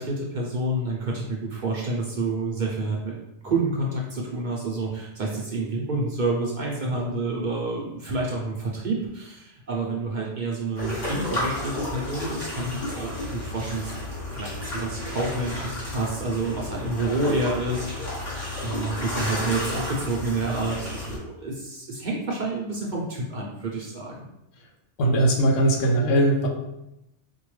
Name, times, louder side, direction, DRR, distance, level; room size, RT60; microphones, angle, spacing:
voice 1, 0.0-3.1 3.4-24.3, right 2 dB, 50° right, -3 dB, 0.6 m, -29 dB
sound 1, 10.7-21.2, left 1 dB, 40° left, 1.2 m, -32 dB
voice 2, 25.0-26.5, right 1 dB, 85° left, 2 dB, 1.1 m, -20 dB
4.5 x 2.2 x 3.1 m, 0.89 s
omnidirectional pair, 1.3 m